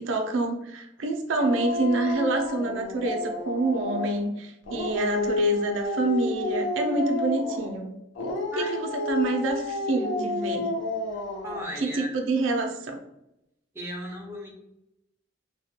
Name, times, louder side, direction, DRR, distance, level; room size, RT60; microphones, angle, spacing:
voice 1, 0.0-8.0 8.6-10.7 11.8-13.0, right 2 dB, 85° right, 4 dB, 0.4 m, -27 dB
Dog, 1.4-4.2 4.6-7.7 8.1-11.7, left 2 dB, 80° left, 0.4 m, -30 dB
voice 2, 8.5-8.9 11.1-12.2 13.7-14.5, equal, 15° right, -1 dB, 0.3 m, -36 dB
2.2 x 2.1 x 2.8 m, 0.86 s
head